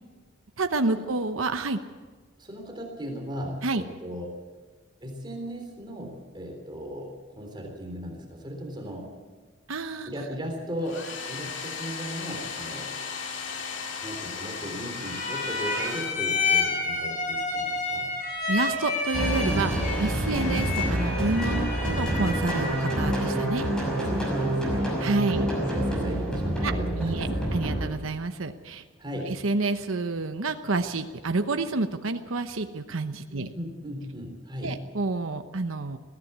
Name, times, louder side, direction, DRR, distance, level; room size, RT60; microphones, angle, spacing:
voice 1, 0.6-1.8 3.6-3.8 9.7-10.3 18.5-19.7 20.0-23.7 25.0-25.5 26.6-26.7 27.0-28.8 29.2-33.5 34.6-36.0, right 3 dB, 85° right, 7 dB, 1.0 m, -29 dB
voice 2, 2.4-4.3 5.0-9.1 10.1-11.0 11.3-12.9 14.0-18.1 20.3-20.5 23.6-23.8 24.1-24.9 25.3-27.5 29.0-29.4 33.3-34.8, equal, 25° right, 2 dB, 3.5 m, -37 dB
Domestic sounds home sounds, 10.8-16.7, left 5 dB, 65° left, 2.3 m, -36 dB
Hearts and Flowers, 15.0-23.1, left 3 dB, 40° left, 6.1 m, -30 dB
sound 1, 19.1-27.9, right 1 dB, 5° left, 6.0 m, -27 dB
21.5 x 15.5 x 8.2 m, 1.4 s
head